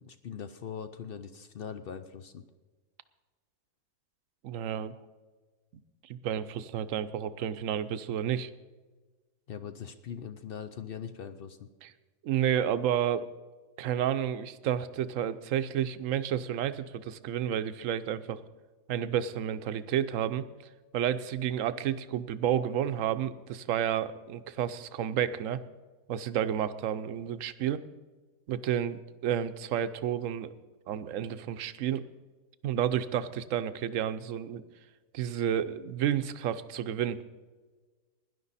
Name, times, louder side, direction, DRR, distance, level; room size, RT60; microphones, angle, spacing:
voice 1, 0.0-2.4 9.5-11.7, left 7 dB, 60° left, 10 dB, 0.6 m, -41 dB
voice 2, 4.4-4.9 6.2-8.5 11.8-11.9 12.2-13.3 13.8-18.4 18.9-20.5 20.9-25.6 26.1-27.8 28.5-30.5 30.9-32.1 32.6-34.6 35.1-37.2, right 10 dB, 65° right, 12 dB, 1.0 m, -31 dB
17.0 x 11.0 x 4.1 m, 1.3 s
omnidirectional pair, 1.6 m